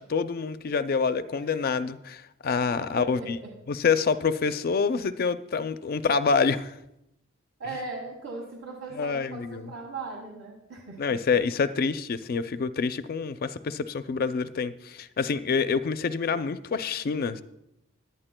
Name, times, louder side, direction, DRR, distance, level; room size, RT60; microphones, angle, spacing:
voice 1, 0.0-3.4 3.7-6.7 9.0-9.7 11.0-17.4, left 5 dB, 45° left, 11 dB, 0.4 m, -27 dB
voice 2, 2.6-3.5 7.6-11.2, right 3 dB, 75° right, -2 dB, 1.6 m, -39 dB
17.5 x 11.0 x 2.2 m, 0.84 s
head